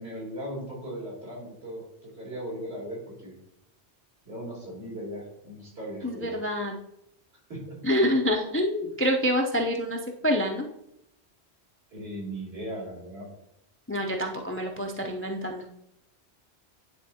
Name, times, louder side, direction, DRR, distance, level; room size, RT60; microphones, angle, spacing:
voice 1, 0.0-3.4 4.2-6.4 7.5-7.8 11.9-13.3, equal, 70° right, -5 dB, 2.9 m, -38 dB
voice 2, 6.0-6.7 7.8-10.0 10.2-10.7 13.9-15.6, equal, 20° left, 2 dB, 0.4 m, -26 dB
10.0 x 3.5 x 2.8 m, 0.78 s
omnidirectional pair, 1.1 m